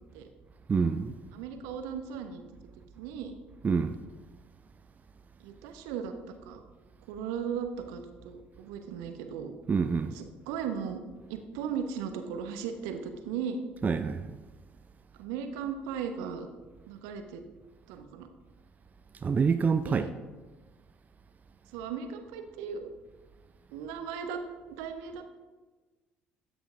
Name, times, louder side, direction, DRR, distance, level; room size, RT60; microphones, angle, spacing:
voice 1, 0.7-1.1 3.6-4.0 9.7-10.2 13.8-14.3 19.2-20.1, right 5 dB, 30° right, 0.5 m, -26 dB
voice 2, 1.3-2.4 3.0-3.3 5.4-6.6 7.1-9.5 10.1-11.0 11.3-13.6 15.2-16.5 16.9-17.4 17.9-18.3 19.8-20.1 21.7-22.9 23.7-24.4 24.7-25.2, right 7 dB, 65° right, 1.0 m, -37 dB
13.5 x 9.3 x 3.6 m
figure-of-eight pair, 50°, 5 cm